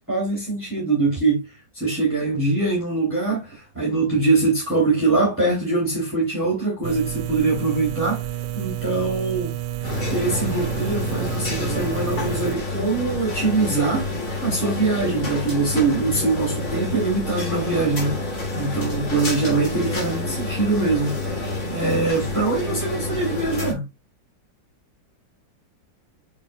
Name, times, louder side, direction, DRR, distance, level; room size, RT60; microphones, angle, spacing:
voice 1, 0.1-9.5 10.1-14.1 14.4-23.8, right 3 dB, 5° right, 3.0 m, -23 dB
sound 1, 6.8-12.6, right 14 dB, 90° right, 1.3 m, -30 dB
sound 2, 9.8-23.7, left 2 dB, 55° left, 3.2 m, -28 dB
6.6 x 6.4 x 2.3 m
omnidirectional pair, 2.0 m